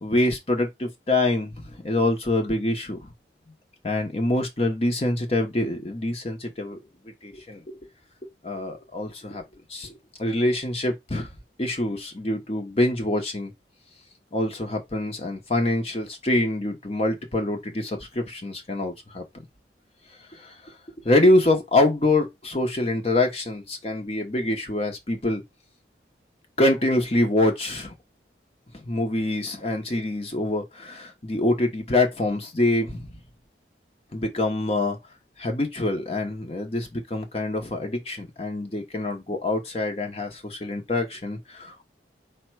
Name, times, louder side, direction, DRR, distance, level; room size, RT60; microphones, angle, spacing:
voice 1, 0.0-3.1 3.8-6.8 7.0-7.8 8.4-9.4 9.7-11.3 11.6-13.5 14.3-19.2 20.3-20.7 21.0-25.4 26.6-27.9 28.7-33.1 34.1-35.0 35.4-41.8, left 2 dB, 35° left, 0.8 m, -25 dB
5.0 x 2.2 x 4.5 m
head